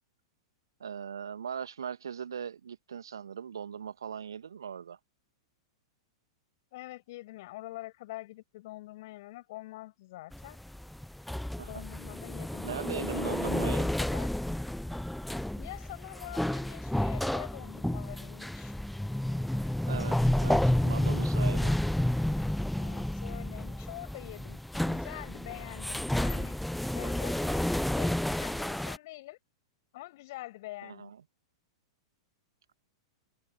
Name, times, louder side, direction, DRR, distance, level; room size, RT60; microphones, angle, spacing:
voice 1, 0.8-5.0 11.6-11.8 12.6-13.9 19.9-21.7 30.8-31.2, right 7 dB, 65° right, 2.2 m, -39 dB
voice 2, 6.7-10.6 11.6-12.6 12.9-13.7 14.0-14.3 15.5-18.8 22.8-26.6 26.9-29.4 29.9-31.1, left 18 dB, 50° left, 6.5 m, -45 dB
sound 1, 10.3-29.0, left 1 dB, ahead, 0.7 m, -31 dB
figure-of-eight pair, 100°, 2 cm